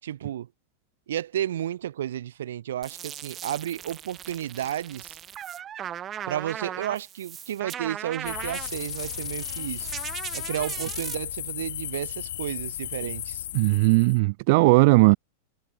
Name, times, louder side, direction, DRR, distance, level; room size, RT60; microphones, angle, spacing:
voice 1, 0.0-0.5 1.1-5.2 6.3-9.9 10.3-13.5, right 11 dB, 80° right, 0.9 m, -32 dB
sound 1, 2.8-11.2, right 10 dB, 25° right, 0.8 m, -38 dB
sound 2, 8.2-14.2, left 13 dB, 75° left, 1.8 m, -35 dB
voice 2, 13.5-15.2, right 25 dB, 55° right, 0.5 m, -18 dB
hypercardioid pair, 130°, 0 cm